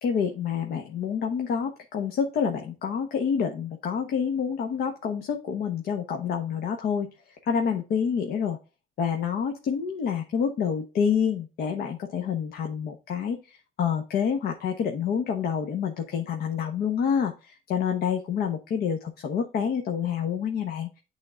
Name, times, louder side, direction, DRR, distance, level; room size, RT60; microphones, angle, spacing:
voice 1, 0.0-7.1 7.5-8.6 9.0-20.9, left 7 dB, 65° left, 4 dB, 1.1 m, -28 dB
8.8 x 3.7 x 3.7 m, 0.30 s
cardioid pair, 110°, 17 cm